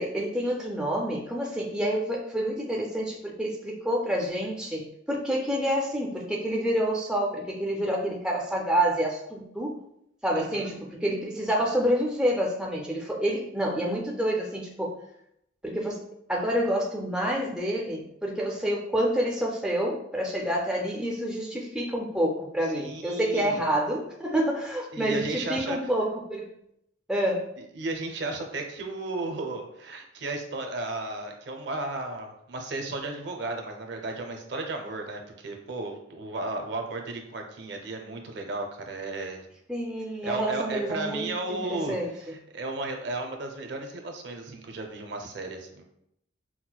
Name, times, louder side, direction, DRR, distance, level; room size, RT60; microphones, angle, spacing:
voice 1, 0.0-9.8 10.2-15.0 15.6-26.5 27.1-27.5 39.7-42.1, equal, 5° right, -2 dB, 0.3 m, -28 dB
voice 2, 10.3-10.7 22.8-23.6 24.9-25.8 27.7-39.5 40.2-42.0 42.2-45.8, right 2 dB, 60° right, 3 dB, 0.5 m, -34 dB
5.7 x 2.1 x 2.3 m, 0.78 s
head